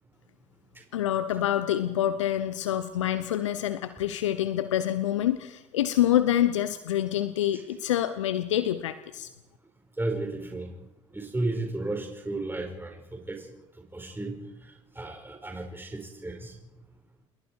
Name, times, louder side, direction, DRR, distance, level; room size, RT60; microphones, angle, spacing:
voice 1, 0.9-9.3, left 11 dB, 85° left, 12 dB, 0.9 m, -26 dB
voice 2, 10.0-10.7 11.1-13.4 13.9-14.4 14.9-16.5, right 2 dB, 15° right, 2 dB, 5.0 m, -33 dB
28.5 x 21.5 x 4.7 m, 1.0 s
hypercardioid pair, 55°, 15 cm